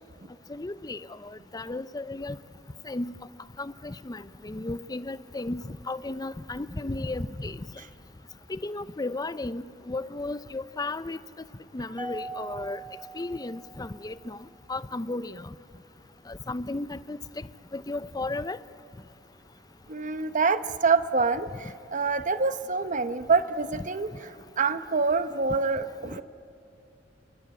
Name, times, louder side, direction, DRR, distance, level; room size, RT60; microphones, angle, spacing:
voice 1, 0.5-2.4 2.8-3.1 3.6-7.7 8.5-11.2 11.7-12.8 13.1-14.4 14.7-15.5 16.3-17.2 17.7-18.6, left 2 dB, 20° left, 15 dB, 0.6 m, -34 dB
Mallet percussion, 12.0-14.4, right 3 dB, 10° right, 0.9 m, -41 dB
voice 2, 19.9-24.1 24.6-26.2, right 4 dB, 45° right, 12 dB, 0.9 m, -26 dB
29.5 x 23.0 x 8.8 m, 2.8 s
head